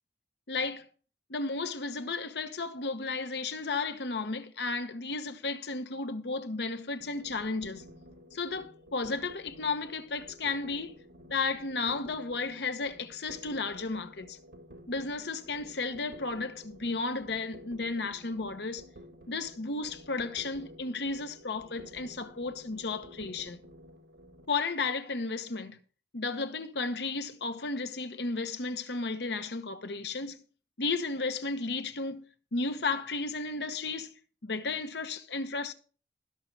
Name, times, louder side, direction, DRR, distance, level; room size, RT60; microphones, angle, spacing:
voice 1, 0.5-0.9 1.3-7.8 8.3-11.0 11.3-14.4 14.9-18.8 19.3-23.6 24.5-25.8 26.1-30.4 30.8-34.1 34.4-35.7, left 3 dB, 70° left, 1.0 m, -33 dB
sound 1, 7.0-24.5, equal, 80° right, 1.7 m, -52 dB
17.0 x 6.3 x 3.3 m
head